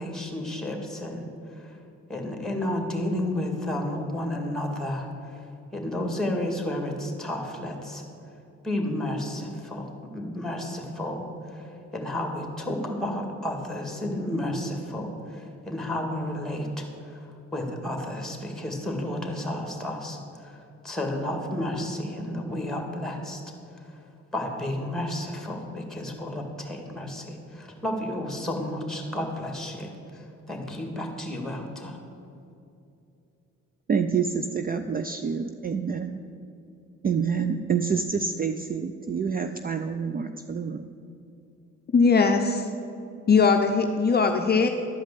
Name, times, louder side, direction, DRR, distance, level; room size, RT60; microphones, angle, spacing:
voice 1, 0.0-1.8 2.1-5.5 5.7-8.0 8.6-23.4 23.7-24.0 24.3-32.0, left 1 dB, ahead, 3 dB, 2.0 m, -32 dB
voice 2, 33.9-36.2 37.0-40.9, right 6 dB, 30° right, 8 dB, 0.4 m, -27 dB
voice 3, 41.9-42.7 43.3-44.7, left 4 dB, 35° left, 4 dB, 0.6 m, -20 dB
11.5 x 5.1 x 8.2 m, 2.7 s
cardioid pair, 90°, 30 cm